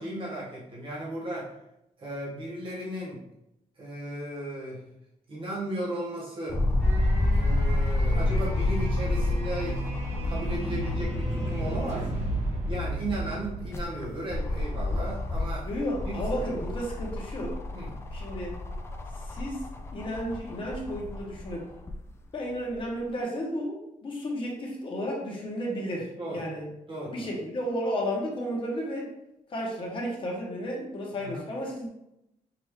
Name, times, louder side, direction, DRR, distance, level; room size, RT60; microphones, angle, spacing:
voice 1, 0.0-1.5 2.0-3.2 3.8-4.8 5.3-6.6 7.3-9.9 10.1-12.3 12.7-15.7 16.0-16.6 17.7-18.0 26.2-26.5 26.9-27.3 31.1-31.4, right 1 dB, 40° right, -6 dB, 1.6 m, -35 dB
sound 1, 6.5-11.5 12.0-12.1 13.4-22.0 22.7-22.8, left 2 dB, 20° left, 0.4 m, -29 dB
sound 2, 6.8-14.7, equal, 60° right, 1.4 m, -33 dB
voice 2, 15.6-17.6 18.1-18.5 19.3-19.6 19.9-21.7 22.3-26.7 27.1-29.1 29.5-31.9, equal, 40° left, -2 dB, 1.1 m, -33 dB
6.0 x 2.7 x 3.2 m, 0.84 s
wide cardioid pair, 175°, 14 cm